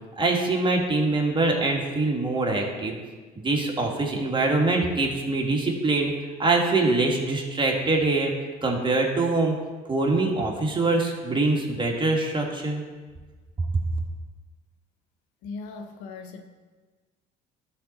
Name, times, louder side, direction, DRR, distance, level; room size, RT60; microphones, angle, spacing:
voice 1, 0.2-3.0 3.4-6.1 6.4-8.3 8.6-9.6 9.9-12.8, right 2 dB, 25° right, 0 dB, 1.8 m, -24 dB
voice 2, 15.4-16.4, left 4 dB, 85° left, 6 dB, 0.9 m, -38 dB
12.5 x 4.2 x 4.2 m, 1.4 s
supercardioid pair, 80°, 20 cm